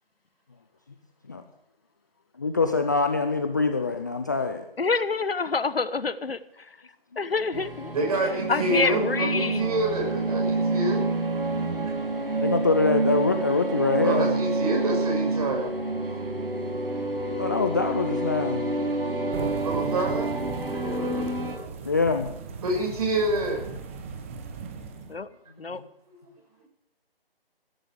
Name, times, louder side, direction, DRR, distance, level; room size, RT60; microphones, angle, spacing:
voice 1, 2.4-4.6 12.4-14.3 17.4-18.7 21.8-22.3, left 4 dB, 20° left, 6 dB, 0.5 m, -24 dB
voice 2, 4.8-6.4 7.2-7.9 8.5-9.7 25.1-25.3 25.6-25.8, left 4 dB, 75° left, 15 dB, 1.2 m, -27 dB
sound 1, 7.5-21.6, right 2 dB, 70° right, 6.1 m, -28 dB
voice 3, 7.9-11.2 14.0-15.7 16.0-16.1 19.6-20.4 20.7-21.7 22.6-23.7 26.1-26.2, right 2 dB, 40° right, 1 dB, 6.4 m, -28 dB
sound 2, 19.3-25.2, right 5 dB, 15° right, 0.9 m, -38 dB
15.0 x 14.5 x 4.9 m, 0.80 s
figure-of-eight pair, 155°, 30 cm